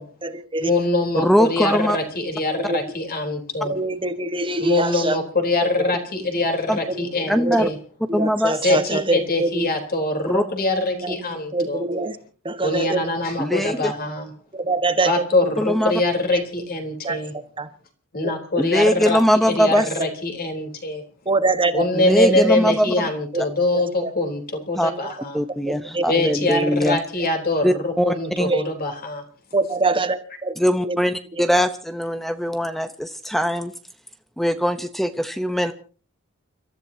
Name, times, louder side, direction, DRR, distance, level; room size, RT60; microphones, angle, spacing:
voice 1, 0.0-0.7 2.7-2.8 3.6-5.1 7.4-7.6 8.2-9.5 11.5-12.1 12.4-13.0 14.7-15.1 17.0-17.2 17.6-17.7 19.7-19.8 21.3-21.8 23.3-23.4 23.7-24.1 25.9-26.0 26.5-26.6 28.5-28.6 29.5-30.5 30.8-30.9, right 2 dB, 25° right, 10 dB, 1.4 m, -23 dB
voice 2, 0.6-3.7 4.6-7.8 8.6-11.8 12.6-14.3 15.0-17.3 18.1-21.0 21.7-25.4 26.0-29.2, left 2 dB, 45° left, 4 dB, 3.7 m, -23 dB
voice 3, 1.1-2.0 6.7-6.8 7.3-7.7 8.1-8.6 10.3-10.4 13.4-13.9 15.6-15.9 18.6-19.9 21.9-23.1 24.8-24.9 25.3-27.0 27.6-28.5 30.6-33.7 34.4-35.7, equal, ahead, 9 dB, 0.8 m, -21 dB
29.5 x 14.0 x 2.8 m, 0.39 s
head